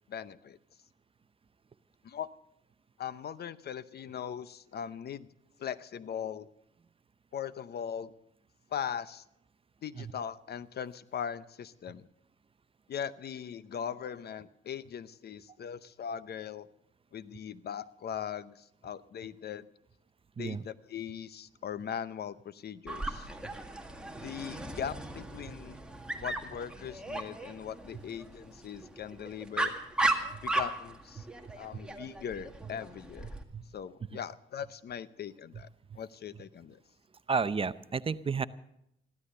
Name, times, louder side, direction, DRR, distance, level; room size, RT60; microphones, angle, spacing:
voice 1, 0.1-0.6 2.0-2.3 3.0-5.3 5.6-6.5 7.3-8.1 8.7-9.2 9.8-12.0 12.9-16.7 17.1-19.7 20.4-23.3 24.2-25.8 26.2-29.7 30.4-31.3 31.6-33.3 33.7-35.7 36.0-36.8, left 8 dB, 55° left, 16 dB, 0.8 m, -40 dB
Dog, 22.9-33.4, right 2 dB, 5° right, 1.8 m, -36 dB
voice 2, 37.3-38.5, right 5 dB, 30° right, 14 dB, 0.6 m, -31 dB
15.0 x 13.0 x 6.7 m, 0.79 s
cardioid pair, 90°, 20 cm